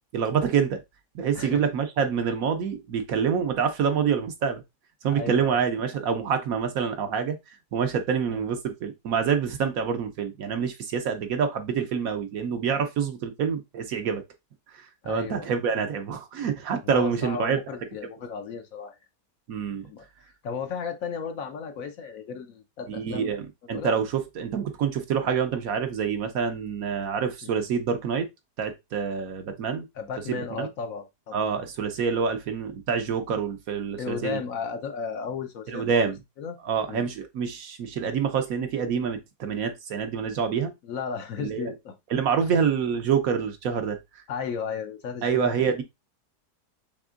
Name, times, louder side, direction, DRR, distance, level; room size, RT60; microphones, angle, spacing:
voice 1, 0.1-0.8 1.1-4.6 5.0-7.4 7.7-14.2 14.7-17.6 19.5-19.9 22.9-28.3 28.6-29.9 30.3-30.7 31.3-34.4 35.7-36.2 36.6-40.7 41.4-41.7 42.1-44.0 45.2-45.8, right 6 dB, 65° right, 1.0 m, -27 dB
voice 2, 5.1-5.6 8.3-8.4 15.0-15.5 16.8-19.0 19.8-23.3 23.7-23.9 27.4-27.6 29.9-31.4 34.0-36.1 36.4-36.6 36.9-37.0 40.8-41.9 44.3-45.7, left 6 dB, 65° left, 1.0 m, -34 dB
6.0 x 3.6 x 2.4 m
omnidirectional pair, 1.8 m